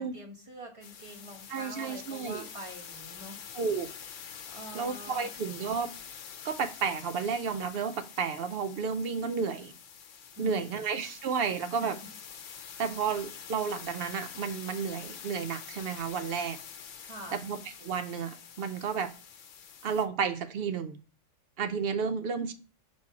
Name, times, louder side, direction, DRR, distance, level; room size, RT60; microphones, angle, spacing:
voice 1, 0.0-3.5 4.5-5.3 10.4-10.8 11.8-12.1 17.0-17.4, right 1 dB, 25° right, 1.3 m, -45 dB
sound 1, 0.8-20.1, left 7 dB, 80° left, 1.1 m, -46 dB
voice 2, 1.5-2.5 3.5-3.9 4.7-5.9 6.4-9.7 10.4-12.0 12.8-16.6 17.3-19.1 19.8-21.0 21.6-22.5, right 6 dB, 60° right, 0.7 m, -32 dB
4.4 x 4.2 x 5.7 m
omnidirectional pair, 1.3 m